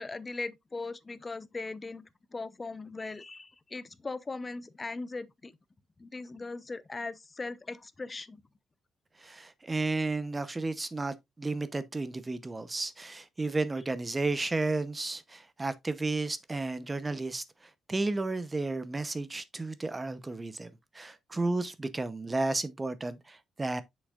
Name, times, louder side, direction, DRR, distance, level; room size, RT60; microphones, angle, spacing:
voice 1, 0.0-2.0 2.3-5.5 6.0-8.4, left 3 dB, 25° left, 0.7 m, -39 dB
voice 2, 9.2-17.4 17.9-20.7 20.9-23.8, right 3 dB, 20° right, 0.8 m, -32 dB
7.8 x 6.4 x 2.4 m
cardioid pair, 90°, 0 cm